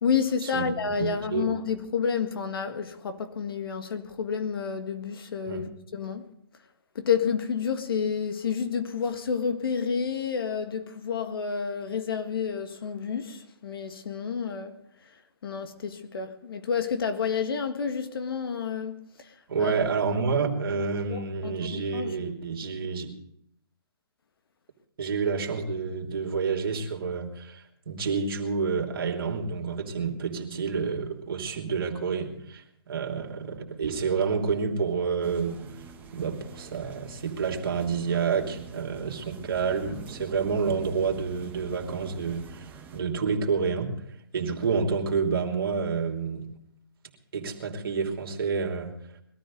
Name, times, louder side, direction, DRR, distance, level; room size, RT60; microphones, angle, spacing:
voice 1, 0.0-6.3 7.0-14.8 15.4-20.2 21.1-22.2, left 6 dB, 65° left, 1.8 m, -30 dB
voice 2, 0.5-1.5 5.5-5.6 19.5-23.1 25.0-35.6 36.1-42.7 42.9-43.9 44.3-46.5 47.3-48.9, right 5 dB, 65° right, 3.0 m, -29 dB
sound 1, 35.2-43.0, right 5 dB, 15° right, 1.3 m, -45 dB
21.0 x 13.5 x 3.9 m
hypercardioid pair, 155°, 13 cm